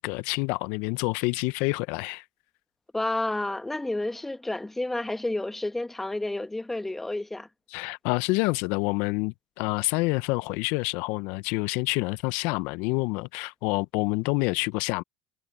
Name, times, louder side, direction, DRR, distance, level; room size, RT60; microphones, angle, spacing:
voice 1, 0.0-2.2 7.7-15.0, left 25 dB, 65° left, 0.8 m, -27 dB
voice 2, 2.9-7.5, left 2 dB, 10° left, 1.2 m, -30 dB
hypercardioid pair, 75°, 3 cm